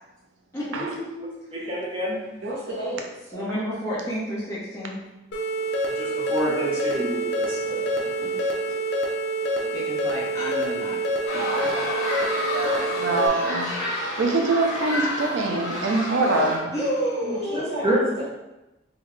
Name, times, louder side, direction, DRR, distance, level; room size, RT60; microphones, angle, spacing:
voice 1, 0.5-1.2 3.3-5.0 8.2-8.5 9.7-11.0 11.3-11.9 16.7-17.7, equal, 15° left, -8 dB, 1.0 m, -30 dB
voice 2, 1.5-2.2 5.8-8.4 12.5-12.8 17.8-18.0, right 1 dB, 30° right, -6 dB, 0.6 m, -29 dB
voice 3, 2.4-3.3 17.2-18.2, equal, 55° right, -9 dB, 0.8 m, -32 dB
sound 1, 5.3-13.3, right 1 dB, 60° left, 0.5 m, -27 dB
sound 2, 11.3-16.6, left 1 dB, 85° left, 1.1 m, -29 dB
voice 4, 12.9-16.7, right 3 dB, 75° right, 2 dB, 0.5 m, -24 dB
3.6 x 2.3 x 3.1 m, 1.0 s
head